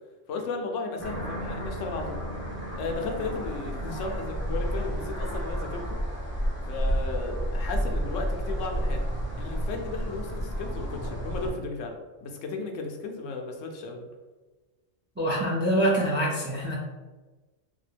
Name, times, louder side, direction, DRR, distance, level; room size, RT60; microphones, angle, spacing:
voice 1, 0.3-2.2 2.8-6.0 6.7-9.0 9.3-12.0 12.2-14.1, left 3 dB, 80° left, 3 dB, 0.9 m, -35 dB
sound 1, 1.0-11.5, equal, 15° left, 0.7 m, -31 dB
voice 2, 15.2-16.8, right 1 dB, 15° right, -4 dB, 0.3 m, -25 dB
3.9 x 2.2 x 3.3 m, 1.2 s
omnidirectional pair, 1.3 m